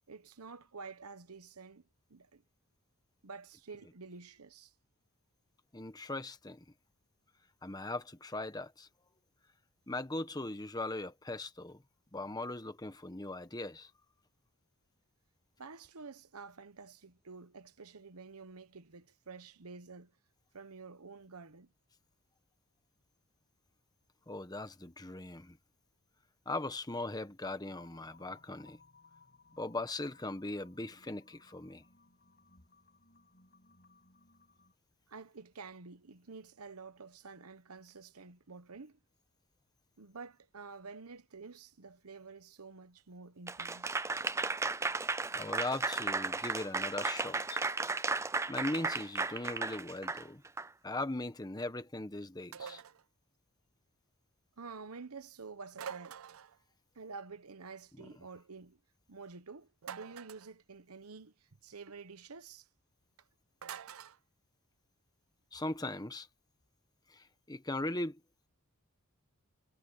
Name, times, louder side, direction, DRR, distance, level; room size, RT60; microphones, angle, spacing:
voice 1, 0.1-2.4 3.2-4.7 15.6-20.1 20.5-21.7 35.1-39.0 40.0-44.0 54.6-56.2 56.9-58.8 59.1-62.7, right 4 dB, 85° right, 1.1 m, -49 dB
voice 2, 5.7-6.6 7.6-8.9 9.9-11.8 12.1-13.9 24.3-25.6 26.5-28.8 29.6-31.8 45.3-47.6 48.5-50.4 50.8-52.8 65.5-66.3 67.1-68.2, left 2 dB, 20° left, 1.2 m, -39 dB
sound 1, 27.6-34.7, left 3 dB, 45° left, 7.2 m, -64 dB
Applause / Crowd, 43.5-50.7, right 3 dB, 15° right, 0.5 m, -34 dB
sound 2, 52.5-53.0 55.7-56.6 59.8-60.5 63.6-64.2, right 8 dB, 65° right, 0.5 m, -45 dB
head